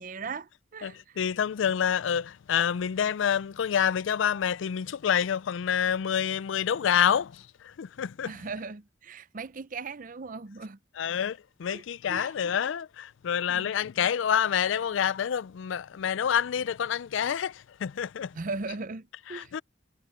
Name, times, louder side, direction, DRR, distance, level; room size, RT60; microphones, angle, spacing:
voice 1, 0.0-1.2 8.3-10.8 11.7-11.8 12.1-12.3 13.5-13.7 18.3-19.6, right 4 dB, 45° right, 0.6 m, -38 dB
voice 2, 0.8-7.4 7.8-8.3 11.0-18.3 19.3-19.6, left 8 dB, 80° left, 0.4 m, -27 dB
head